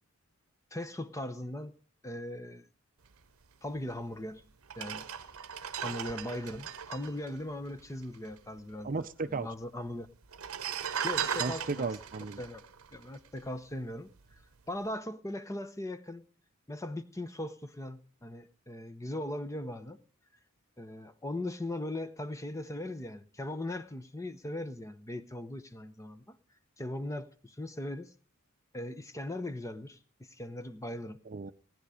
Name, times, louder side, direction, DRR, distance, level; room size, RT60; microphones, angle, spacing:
voice 1, 0.7-1.7 2.0-2.6 3.6-4.4 4.8-5.1 5.8-10.1 11.0-11.9 12.4-12.6 12.9-14.1 14.7-16.2 16.7-20.0 20.8-26.4 26.8-28.1 28.7-31.2, left 1 dB, 15° left, 0.8 m, -39 dB
sound 1, 4.0-4.1 4.6-8.3 8.6-8.7 8.8-9.5 10.2-13.7 14.2-14.4, right 8 dB, 80° right, 0.8 m, -38 dB
voice 2, 8.8-9.5 11.4-12.4 31.3-31.5, right 4 dB, 40° right, 0.6 m, -35 dB
18.0 x 10.5 x 5.0 m
head